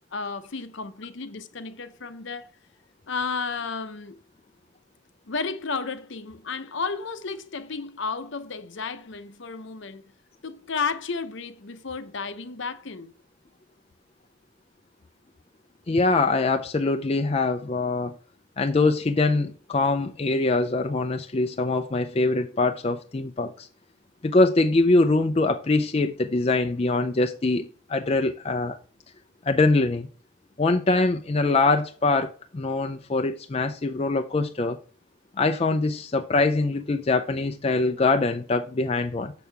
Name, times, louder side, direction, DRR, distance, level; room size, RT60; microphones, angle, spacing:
voice 1, 0.1-2.5 3.1-4.2 5.3-10.1 10.4-13.1, left 4 dB, 60° left, 0.7 m, -32 dB
voice 2, 15.9-18.1 18.6-23.7 24.2-28.8 29.4-30.1 30.6-34.8 35.4-39.3, left 3 dB, 30° left, 0.4 m, -23 dB
6.9 x 6.3 x 3.3 m
head